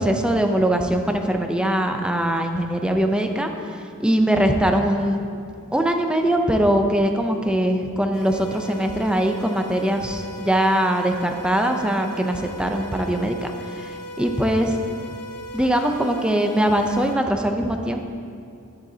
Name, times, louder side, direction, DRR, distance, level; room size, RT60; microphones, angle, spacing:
voice 1, 0.0-3.5 4.0-5.2 5.7-13.9 14.2-14.7 15.5-18.0, right 1 dB, 5° right, 4 dB, 0.6 m, -21 dB
sound 1, 8.1-17.1, equal, 90° left, 2.3 m, -37 dB
11.5 x 11.0 x 2.8 m, 2.5 s
head